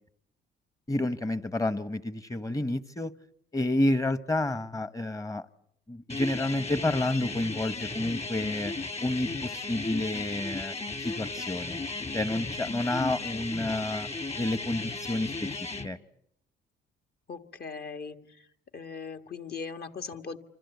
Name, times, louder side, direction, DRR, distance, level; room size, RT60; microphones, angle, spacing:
voice 1, 0.9-3.1 3.5-5.4 5.9-8.7 9.0-10.7 11.0-11.8 12.1-14.1 14.4-15.6 15.8-16.0, left 1 dB, 15° left, 15 dB, 1.1 m, -29 dB
sound 1, 6.1-15.9, left 3 dB, 35° left, 1.8 m, -35 dB
voice 2, 17.3-18.5 18.7-20.4, left 5 dB, 50° left, 7 dB, 1.9 m, -39 dB
28.0 x 26.0 x 8.2 m, 0.73 s
cardioid pair, 90°, 20 cm